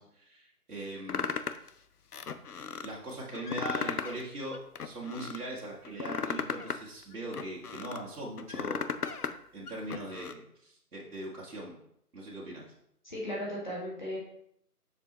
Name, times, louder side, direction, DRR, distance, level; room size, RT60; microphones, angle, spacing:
voice 1, 0.0-1.3 2.8-9.0 9.5-11.8 12.1-12.7, right 1 dB, 70° right, -4 dB, 1.9 m, -40 dB
sound 1, 1.1-1.7 2.1-2.9 3.3-4.2 4.5-5.4 5.8-8.0 8.4-9.3 9.7-10.3, left 6 dB, 75° left, 0.6 m, -35 dB
voice 2, 13.0-14.2, equal, 30° left, -4 dB, 1.7 m, -36 dB
6.8 x 6.0 x 2.9 m, 0.72 s
figure-of-eight pair, 170°, 46 cm